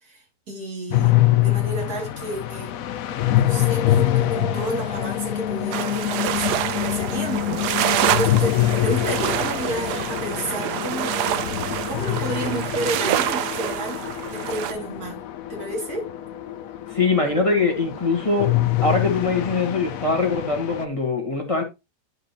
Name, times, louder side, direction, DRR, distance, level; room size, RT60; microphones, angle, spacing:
voice 1, 0.0-1.1 1.4-2.8 3.3-15.2 15.5-16.1, right 1 dB, 70° right, 3.1 m, -31 dB
sound 1, 0.9-20.8, left 13 dB, 70° left, 1.0 m, -25 dB
sound 2, 5.7-14.7, right 12 dB, 85° right, 1.2 m, -27 dB
voice 2, 16.9-18.5 18.8-21.6, left 3 dB, 20° left, 1.6 m, -22 dB
11.0 x 5.1 x 3.0 m
omnidirectional pair, 1.7 m